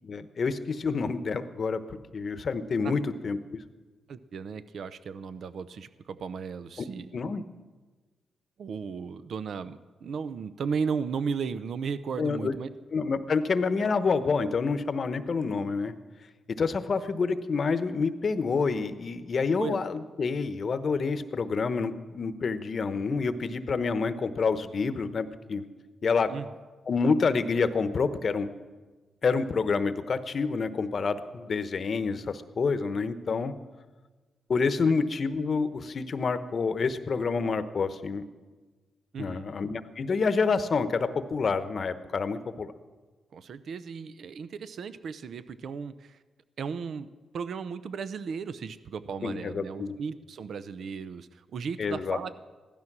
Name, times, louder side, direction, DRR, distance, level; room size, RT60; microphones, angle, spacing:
voice 1, 0.0-1.8 2.1-3.6 7.1-7.4 12.2-12.5 12.9-15.9 16.5-25.6 26.0-26.3 26.9-28.5 29.2-33.5 34.5-38.2 39.2-42.7 49.2-49.9 51.8-52.3, left 4 dB, 50° left, 11 dB, 0.9 m, -28 dB
voice 2, 4.1-7.1 8.6-12.7 19.6-19.8 26.3-26.5 39.1-39.5 43.3-46.2 46.6-47.1 47.3-52.3, right 6 dB, 70° right, 14 dB, 0.6 m, -35 dB
15.5 x 12.5 x 6.1 m, 1.3 s
cardioid pair, 80°, 0 cm